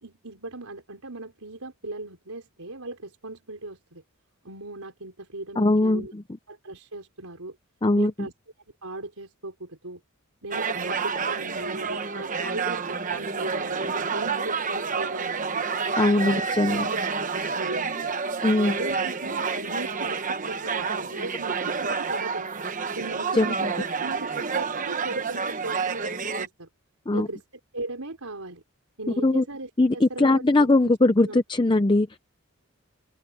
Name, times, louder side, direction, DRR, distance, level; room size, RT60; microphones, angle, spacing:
voice 1, 0.0-4.0 4.4-6.1 6.5-7.6 8.0-8.3 8.8-10.0 10.4-15.7 16.2-16.4 16.9-17.0 17.3-18.1 18.6-22.5 23.0-26.7 27.1-27.4 27.7-28.6 29.0-30.9 31.2-31.4, right 2 dB, 80° right, 4.2 m, -38 dB
voice 2, 5.6-6.2 7.8-8.1 16.0-16.9 18.4-18.8 23.3-23.7 27.1-27.3 29.2-29.4 29.8-32.2, left 2 dB, 20° left, 0.5 m, -21 dB
sound 1, 10.5-26.5, right 5 dB, 35° right, 1.0 m, -29 dB
open air
head